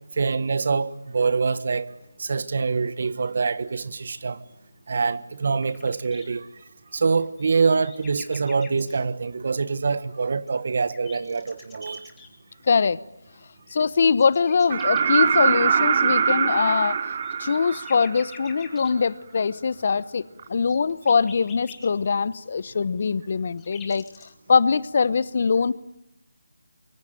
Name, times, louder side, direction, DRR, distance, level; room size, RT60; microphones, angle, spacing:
voice 1, 0.2-1.8 2.2-4.4 4.9-6.5 6.9-12.1, right 4 dB, 50° right, 1.5 m, -25 dB
sound 1, 5.6-6.3 7.1-9.0 10.3-12.3 13.7-15.4 17.0-18.9 20.6-21.9 23.0-24.3, left 7 dB, 10° left, 2.7 m, -46 dB
voice 2, 12.7-13.0 13.7-17.0 17.4-20.2 20.5-24.0 24.5-25.7, left 5 dB, 45° left, 1.0 m, -22 dB
sound 2, 14.7-18.5 20.4-20.5, right 7 dB, 35° right, 1.3 m, -22 dB
24.5 x 23.5 x 9.2 m
figure-of-eight pair, 160°, 0 cm